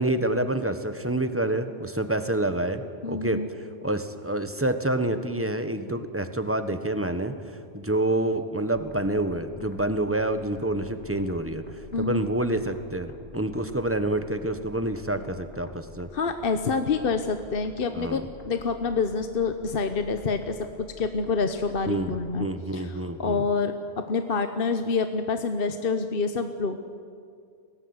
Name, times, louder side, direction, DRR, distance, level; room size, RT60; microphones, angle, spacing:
voice 1, 0.0-3.4 3.8-7.3 7.7-16.1 17.9-18.2 21.9-23.5, right 1 dB, 10° right, 9 dB, 1.3 m, -27 dB
voice 2, 3.0-3.5 11.9-12.2 16.1-22.5 22.7-26.8, left 4 dB, 55° left, 8 dB, 1.2 m, -27 dB
sound 1, 8.7-22.3, left 1 dB, 85° left, 3.5 m, -49 dB
23.5 x 18.0 x 9.7 m, 2.3 s
omnidirectional pair, 1.1 m